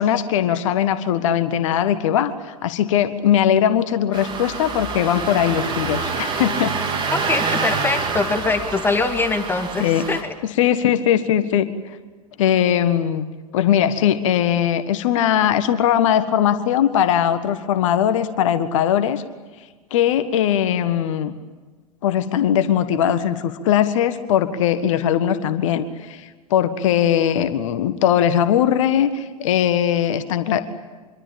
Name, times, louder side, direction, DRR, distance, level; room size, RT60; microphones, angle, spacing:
voice 1, 0.0-6.7 9.8-10.0 10.6-11.7 12.4-13.2 13.5-19.2 19.9-21.3 22.0-30.6, left 10 dB, 55° left, 10 dB, 1.6 m, -20 dB
Engine starting, 4.1-10.2, right 4 dB, 25° right, 4.0 m, -26 dB
voice 2, 7.1-10.3, left 3 dB, 10° left, 6 dB, 2.1 m, -23 dB
25.5 x 24.0 x 8.7 m, 1.3 s
figure-of-eight pair, 95°, 19 cm